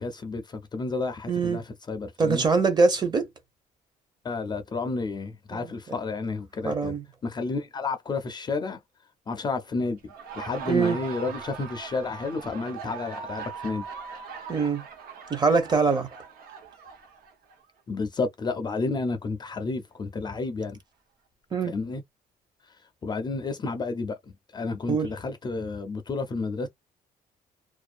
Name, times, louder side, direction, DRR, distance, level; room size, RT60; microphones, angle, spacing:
voice 1, 0.0-2.5 4.2-7.0 7.2-8.8 9.3-10.0 10.4-13.8 17.9-20.8 21.6-22.0 23.0-26.7, left 3 dB, 25° left, 0.4 m, -31 dB
voice 2, 1.3-1.6 2.2-3.3 5.5-5.7 6.6-7.0 10.7-11.0 14.5-14.8 15.3-16.1 21.5-21.7 24.9-25.1, right 4 dB, 25° right, 0.7 m, -23 dB
Laughter, 10.0-17.6, right 6 dB, 75° right, 1.0 m, -40 dB
2.5 x 2.1 x 2.4 m
cardioid pair, 155°, 16 cm